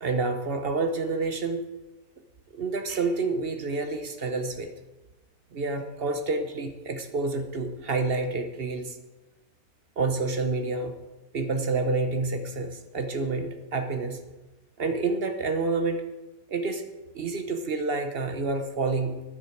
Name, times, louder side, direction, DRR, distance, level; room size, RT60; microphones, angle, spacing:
voice 1, 0.0-1.7 2.5-4.7 5.5-9.0 10.0-11.0 11.3-14.2 14.8-16.0 16.5-16.8 17.1-19.2, right 3 dB, 45° right, 7 dB, 0.9 m, -28 dB
13.0 x 10.0 x 4.5 m, 1.1 s
omnidirectional pair, 1.8 m